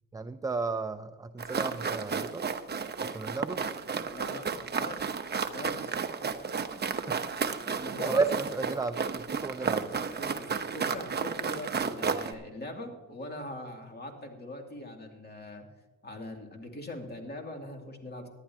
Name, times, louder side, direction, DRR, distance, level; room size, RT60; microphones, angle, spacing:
voice 1, 0.1-2.5 3.0-3.6 6.6-7.2 7.7-10.0, right 4 dB, 10° right, 10 dB, 0.4 m, -33 dB
sound 1, 1.4-12.3, right 5 dB, 30° right, 0.9 m, -32 dB
voice 2, 4.1-6.0 7.8-8.2 10.2-15.6 16.0-18.3, left 1 dB, 30° left, 2 dB, 2.6 m, -42 dB
18.5 x 11.5 x 2.8 m, 1.3 s
cardioid pair, 100°, 35 cm